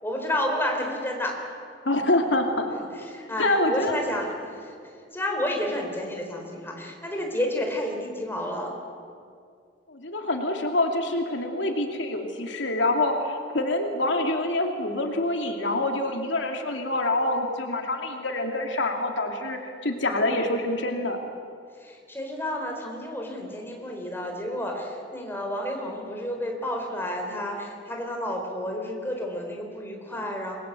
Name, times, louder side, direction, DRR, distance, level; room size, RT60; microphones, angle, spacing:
voice 1, 0.0-1.3 2.9-8.8 21.8-30.6, left 1 dB, 10° left, 1 dB, 4.3 m, -31 dB
voice 2, 1.8-2.7 3.4-3.9 9.9-21.2, left 2 dB, 75° left, 3 dB, 2.6 m, -26 dB
28.0 x 21.5 x 8.3 m, 2.3 s
head